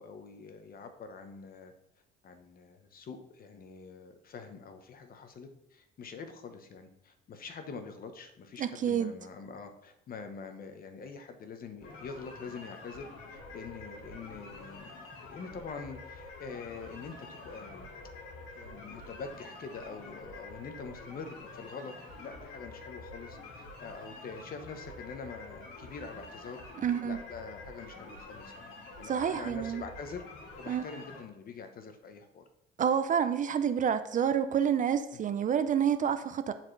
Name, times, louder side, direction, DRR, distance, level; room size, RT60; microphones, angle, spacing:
voice 1, 0.0-1.7 2.2-14.9 15.3-17.9 18.5-26.6 27.0-28.5 29.0-30.2 30.6-32.4 35.1-35.2, left 5 dB, 45° left, 7 dB, 1.0 m, -45 dB
voice 2, 8.6-9.1 26.8-27.2 29.1-29.8 30.7-30.8 32.8-36.5, right 8 dB, 40° right, 11 dB, 0.5 m, -28 dB
sound 1, 11.8-31.2, left 2 dB, 85° left, 1.9 m, -47 dB
10.5 x 4.4 x 3.3 m, 0.82 s
cardioid pair, 100°, 21 cm